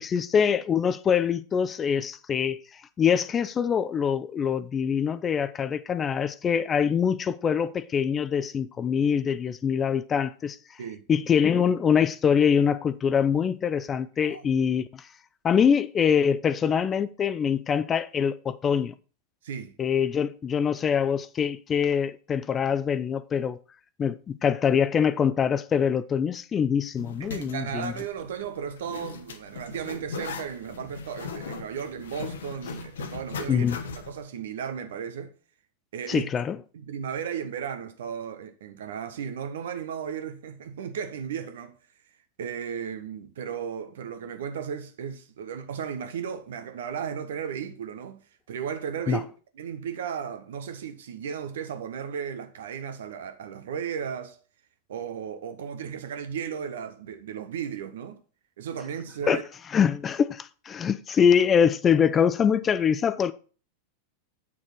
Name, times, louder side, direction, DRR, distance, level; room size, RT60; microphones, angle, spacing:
voice 1, 0.0-2.6 3.0-10.6 11.1-15.0 15.4-18.9 19.8-23.6 24.0-27.9 33.5-33.8 36.1-36.6 49.1-49.2 59.3-59.4 59.7-63.3, left 7 dB, 25° left, 0.5 m, -24 dB
voice 2, 19.4-19.8 27.2-33.7 34.0-35.3 35.9-36.3 36.7-41.8 42.4-49.2 49.5-54.4 54.9-58.2 58.6-59.4, right 7 dB, 60° right, 1.2 m, -35 dB
Zipper (clothing), 27.0-34.2, left 5 dB, 65° left, 1.1 m, -39 dB
8.7 x 6.5 x 4.5 m
figure-of-eight pair, 90°, 0 cm